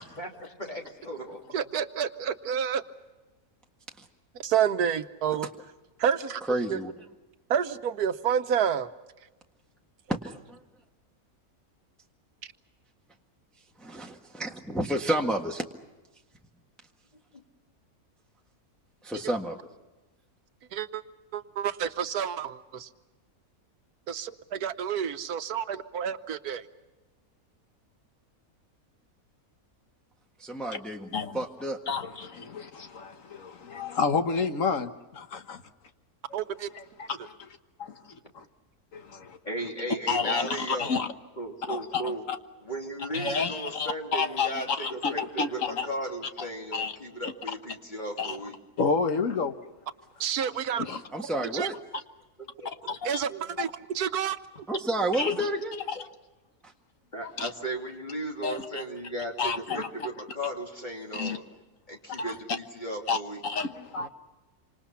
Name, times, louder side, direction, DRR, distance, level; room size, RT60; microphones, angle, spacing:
voice 1, 0.6-1.4 17.3-17.4 39.4-41.0 41.4-42.2 42.6-48.5 52.4-52.7 53.3-53.5 57.1-61.4 61.9-63.4, right 1 dB, 30° left, 3.2 m, -36 dB
voice 2, 1.5-2.8 4.3-5.5 6.0-6.4 6.7-6.8 7.5-8.9 20.7-21.0 21.3-22.9 24.1-26.7 36.3-36.7 50.2-50.9 51.2-51.7 53.0-54.4, right 8 dB, 85° right, 1.5 m, -29 dB
voice 3, 6.5-6.9 10.1-10.6 13.8-15.6 19.0-19.6 30.4-31.8 51.1-51.7 54.7-55.8, right 1 dB, ahead, 1.5 m, -30 dB
voice 4, 31.9-35.6 37.0-37.3 37.8-37.9 38.3-38.4 38.9-39.4 40.1-41.1 41.7-42.4 43.1-45.9 46.7-46.9 47.2-47.3 48.2-48.4 48.8-49.5 50.8-51.0 52.9-53.0 55.1-55.3 55.9-56.0 57.2-57.5 58.4-58.8 59.4-59.9 61.1-61.4 62.2-62.3 63.1-63.2 63.4-64.1, left 5 dB, 60° left, 1.6 m, -30 dB
27.5 x 26.0 x 5.7 m
omnidirectional pair, 1.6 m